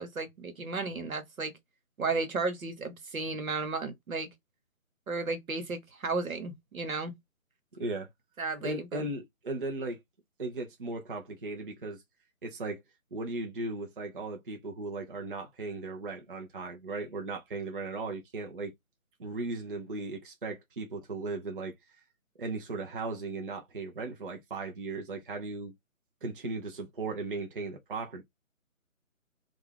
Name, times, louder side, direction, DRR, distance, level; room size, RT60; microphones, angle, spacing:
voice 1, 0.0-1.5 2.0-4.3 5.1-7.1 8.4-9.0, right 3 dB, 80° right, 1.1 m, -34 dB
voice 2, 7.7-8.1 8.6-10.0 10.4-12.0 12.4-12.8 13.1-18.7 19.2-21.7 22.4-25.7 26.2-28.2, right 3 dB, 40° right, 0.5 m, -37 dB
2.5 x 2.3 x 3.2 m
figure-of-eight pair, 160°, 41 cm